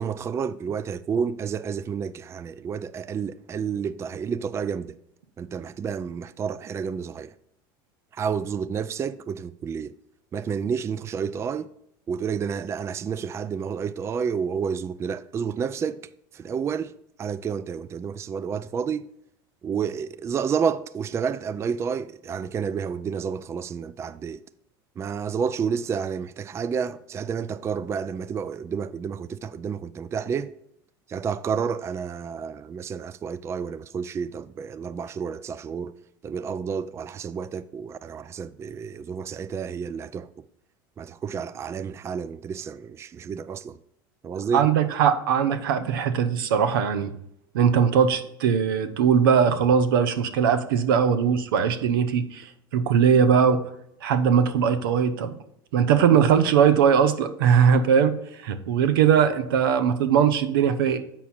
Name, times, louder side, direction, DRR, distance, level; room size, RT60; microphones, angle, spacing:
voice 1, 0.0-5.0 5.4-7.3 8.1-9.9 10.3-11.7 12.1-16.0 16.3-16.9 17.2-19.1 19.6-24.4 25.0-30.5 31.1-36.0 36.2-40.4 41.0-43.8 44.2-44.7, right 6 dB, 25° right, 0.3 m, -30 dB
voice 2, 44.5-47.1 47.5-52.5 52.7-53.6 54.0-55.3 55.7-58.1 58.4-61.0, right 7 dB, 85° right, 0.7 m, -20 dB
7.4 x 5.7 x 4.3 m
supercardioid pair, 100°, 11 cm